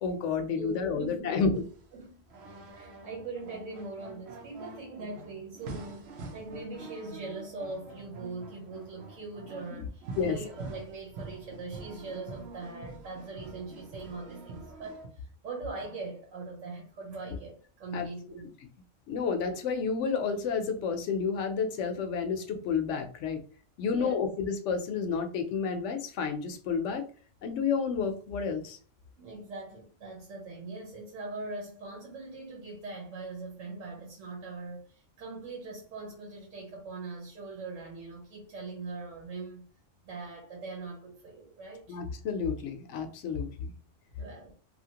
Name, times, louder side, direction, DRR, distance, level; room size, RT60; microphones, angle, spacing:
voice 1, 0.0-1.6 9.7-9.8 10.2-10.4 17.9-18.1 19.1-23.4 23.8-27.1 27.4-28.8 41.9-43.7, left 5 dB, 70° left, 7 dB, 0.8 m, -30 dB
voice 2, 0.5-1.6 1.9-2.2 2.7-18.5 23.9-24.2 29.2-39.7 40.0-42.0 44.2-44.5, right 3 dB, 80° right, -2 dB, 1.2 m, -41 dB
sound 1, 1.5-15.1, right 3 dB, 60° right, 0.8 m, -46 dB
2.8 x 2.4 x 2.8 m, 0.41 s
omnidirectional pair, 1.3 m